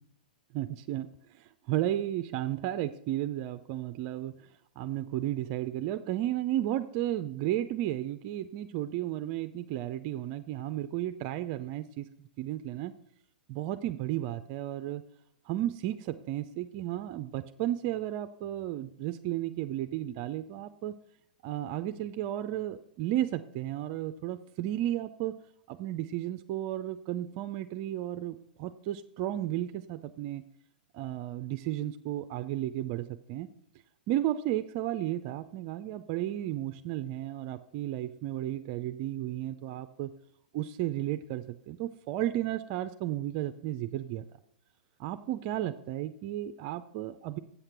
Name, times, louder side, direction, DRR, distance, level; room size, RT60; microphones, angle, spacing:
voice 1, 0.5-4.5 4.8-12.1 12.4-12.9 13.5-15.0 15.5-20.9 21.4-25.4 25.7-30.4 30.9-33.5 34.1-40.1 40.5-44.2 45.0-47.4, right 13 dB, 45° right, 10 dB, 0.5 m, -33 dB
8.3 x 5.8 x 6.7 m, 0.71 s
hypercardioid pair, 125°, 5 cm